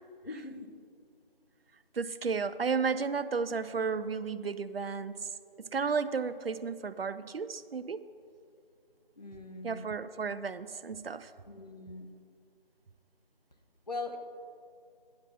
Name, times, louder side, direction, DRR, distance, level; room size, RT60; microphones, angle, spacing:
voice 1, 0.2-0.7 9.2-9.9 11.5-12.1 13.9-14.2, left 3 dB, 45° left, 4 dB, 0.8 m, -41 dB
voice 2, 1.9-5.3 5.6-8.1 9.6-11.3, right 5 dB, 75° right, 14 dB, 0.5 m, -33 dB
10.0 x 6.0 x 5.5 m, 2.3 s
figure-of-eight pair, 165°, 30 cm